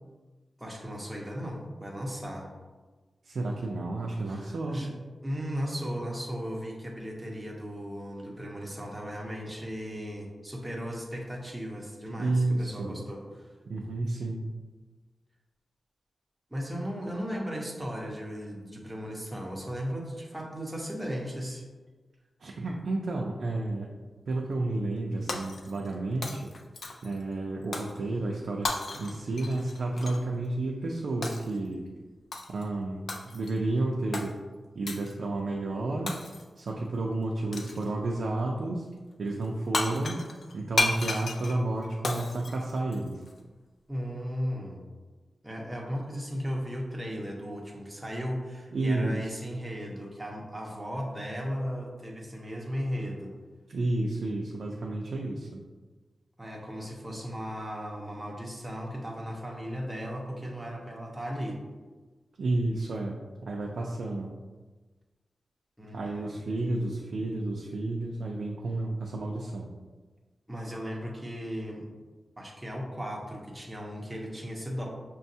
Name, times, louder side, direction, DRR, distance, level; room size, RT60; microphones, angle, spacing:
voice 1, 0.6-2.5 4.3-4.9 5.2-13.5 16.5-21.7 43.9-44.8 45.4-53.3 56.4-61.6 65.8-66.4 70.5-71.9 72.4-74.9, equal, 10° right, -2 dB, 0.7 m, -36 dB
voice 2, 3.2-4.8 12.2-13.0 13.7-14.4 22.4-23.9 24.3-26.5 27.0-31.8 32.5-34.3 34.7-36.2 36.6-38.9 39.2-40.2 40.5-43.2 48.7-49.3 53.7-55.6 62.4-64.3 65.9-69.7, right 2 dB, 75° right, -1 dB, 0.4 m, -31 dB
Shatter, 25.3-25.9 26.2-27.2 27.7-28.0 28.6-30.2 31.2-31.6 32.3-32.6 33.1-33.6 34.1-34.3 34.9-35.1 36.1-36.6 37.5-37.9 39.4-39.5 39.7-43.3, left 2 dB, 60° left, 0.4 m, -33 dB
6.0 x 2.2 x 2.7 m, 1.3 s
wide cardioid pair, 145°, 0 cm